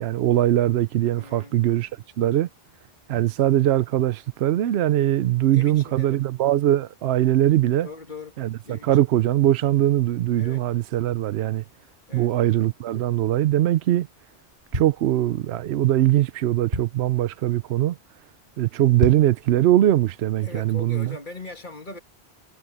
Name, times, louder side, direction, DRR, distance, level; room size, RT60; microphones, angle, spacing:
voice 1, 0.0-1.9 2.2-2.5 3.1-7.9 8.4-11.6 12.1-14.1 14.7-18.0 18.6-21.2, right 13 dB, 80° right, 0.8 m, -21 dB
voice 2, 1.1-1.6 5.5-6.2 7.8-8.4 8.6-8.9 10.4-10.7 12.1-12.3 18.8-18.9 20.4-22.0, left 3 dB, 50° left, 2.8 m, -40 dB
sound 1, 14.4-15.7 16.2-16.3 16.4-17.2 17.7-17.9 18.2-18.3 18.8-19.5 19.9-20.0, right 1 dB, 60° right, 5.1 m, -30 dB
omnidirectional pair, 1.1 m